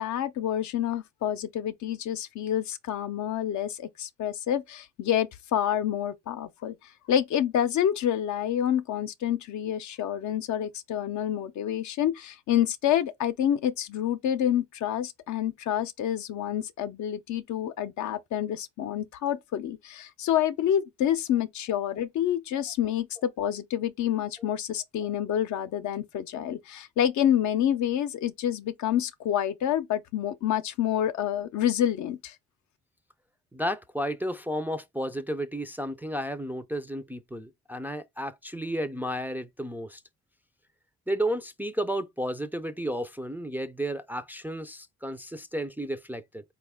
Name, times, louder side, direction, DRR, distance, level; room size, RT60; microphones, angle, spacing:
voice 1, 0.0-6.8 7.1-32.3, left 10 dB, 70° left, 0.6 m, -28 dB
voice 2, 33.5-40.0 41.1-46.4, equal, 5° right, 0.3 m, -32 dB
4.0 x 2.3 x 3.4 m
cardioid pair, 90°, 30 cm